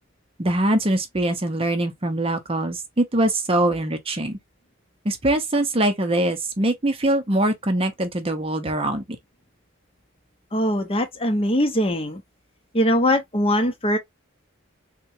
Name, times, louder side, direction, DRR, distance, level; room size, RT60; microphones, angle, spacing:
voice 1, 0.4-4.4 5.0-9.0, right 1 dB, 25° right, 0.6 m, -23 dB
voice 2, 10.5-12.2 12.7-14.0, equal, 25° left, 0.7 m, -21 dB
3.6 x 2.2 x 2.7 m
head